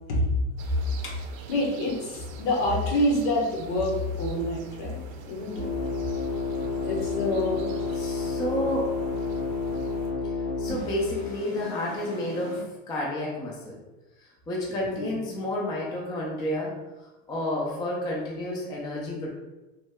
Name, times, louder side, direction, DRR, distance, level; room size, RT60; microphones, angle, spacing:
sound 1, 0.6-10.1, right 5 dB, 75° right, 0.6 m, -45 dB
voice 1, 1.5-5.7 6.8-7.6 15.0-15.2, left 1 dB, 60° left, -1 dB, 1.0 m, -27 dB
sound 2, 5.5-12.6, left 4 dB, 80° left, 1.4 m, -31 dB
voice 2, 8.0-8.9 10.6-13.8 14.5-16.8 17.3-19.3, left 1 dB, 10° left, -3 dB, 0.3 m, -30 dB
3.1 x 2.0 x 3.4 m, 1.1 s
supercardioid pair, 125°, 40 cm